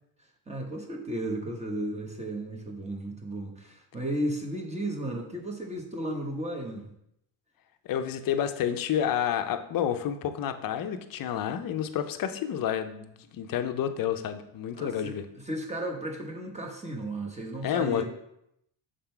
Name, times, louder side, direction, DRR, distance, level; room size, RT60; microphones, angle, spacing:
voice 1, 0.5-6.9 14.8-18.1, right 1 dB, 15° right, 1 dB, 1.0 m, -34 dB
voice 2, 7.8-15.2 17.6-18.1, left 9 dB, 45° left, 8 dB, 0.6 m, -29 dB
6.5 x 3.8 x 4.4 m, 0.78 s
cardioid pair, 130°, 47 cm